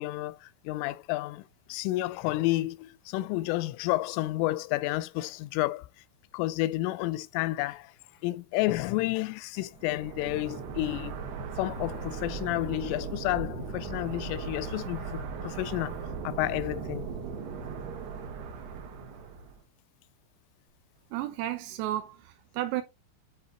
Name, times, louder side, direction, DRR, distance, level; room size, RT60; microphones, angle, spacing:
voice 1, 0.0-1.4 1.7-5.9 6.3-7.9 8.2-11.2 11.6-16.0 16.2-17.1, left 17 dB, 85° left, 2.9 m, -30 dB
sound 1, 9.8-19.6, right 5 dB, 65° right, 3.2 m, -38 dB
voice 2, 21.1-22.8, right 14 dB, 90° right, 3.6 m, -33 dB
10.0 x 4.4 x 4.2 m
omnidirectional pair, 5.9 m